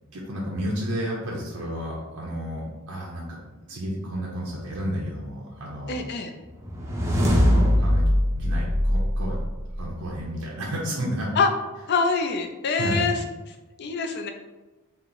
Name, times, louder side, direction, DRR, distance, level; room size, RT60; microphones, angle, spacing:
voice 1, 0.1-3.4 3.7-6.0 7.4-9.4 9.8-11.3 12.8-13.1, equal, 80° right, -3 dB, 0.7 m, -31 dB
voice 2, 5.9-6.3 11.4-11.5 11.9-13.1 13.8-14.3, left 4 dB, 50° left, 5 dB, 0.4 m, -24 dB
sound 1, 6.6-9.9, equal, 15° right, 0.5 m, -22 dB
4.3 x 2.0 x 3.9 m, 1.2 s
head